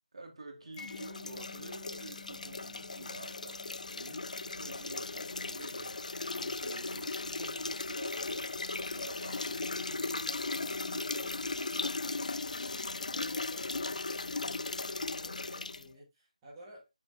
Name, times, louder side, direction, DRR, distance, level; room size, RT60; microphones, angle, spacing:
voice 1, 0.1-3.7 3.9-12.0, right 2 dB, 50° right, 2.0 m, -49 dB
sound 1, 0.7-15.9, left 3 dB, 80° left, 0.3 m, -37 dB
Mallet percussion, 0.8-7.5, left 8 dB, 20° left, 1.7 m, -55 dB
voice 2, 12.6-16.9, right 1 dB, 10° right, 2.5 m, -54 dB
8.7 x 5.6 x 2.4 m
figure-of-eight pair, 170°, 4 cm